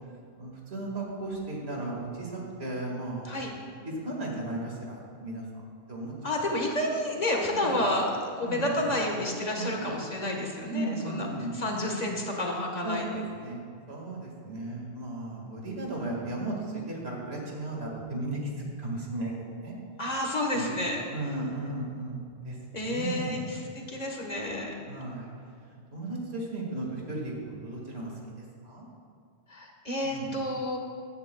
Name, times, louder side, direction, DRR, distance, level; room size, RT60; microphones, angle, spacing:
voice 1, 0.4-3.4 3.9-5.4 5.9-6.1 6.4-6.6 7.5-7.9 8.4-8.9 9.6-10.0 10.7-11.6 12.8-13.1 13.3-19.8 20.5-20.7 21.1-23.4 24.9-25.3 25.9-28.1 28.6-28.9 30.0-30.4, right 2 dB, 70° right, -2 dB, 2.1 m, -35 dB
voice 2, 6.2-8.1 8.4-11.3 11.5-13.2 20.0-21.0 22.7-24.7 29.5-30.8, left 1 dB, 40° left, 1 dB, 1.3 m, -30 dB
15.5 x 10.5 x 2.2 m, 2.2 s
omnidirectional pair, 1.1 m